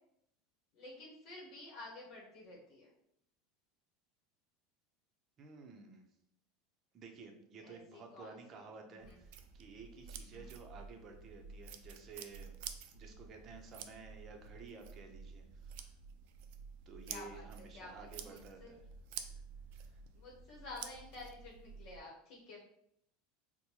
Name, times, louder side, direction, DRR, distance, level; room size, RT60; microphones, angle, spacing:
voice 1, 0.7-2.9 7.6-8.6 8.9-9.2 10.3-10.6 17.1-17.5 17.7-18.7 20.1-22.6, left 2 dB, 55° left, -2 dB, 1.0 m, -51 dB
voice 2, 5.4-6.1 6.9-12.6 12.9-15.9 16.9-18.8 19.8-20.0, right 4 dB, 35° right, 3 dB, 0.7 m, -53 dB
sound 1, 9.0-22.0, right 7 dB, 70° right, 0.4 m, -50 dB
4.3 x 2.2 x 2.8 m, 0.72 s
supercardioid pair, 120°, 0 cm